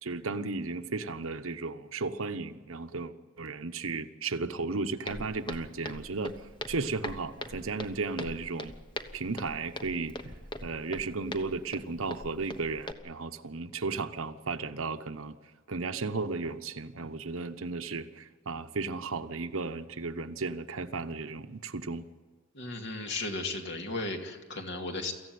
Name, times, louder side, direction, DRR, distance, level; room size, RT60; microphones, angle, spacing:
voice 1, 0.0-6.3 6.7-8.7 9.1-10.4 10.6-15.4 15.7-22.0, right 3 dB, 80° right, 1.1 m, -34 dB
Walk footsteps, 5.1-12.9, left 1 dB, 20° left, 1.1 m, -42 dB
voice 2, 22.5-25.1, left 2 dB, 55° left, 2.5 m, -35 dB
23.5 x 15.0 x 9.4 m
head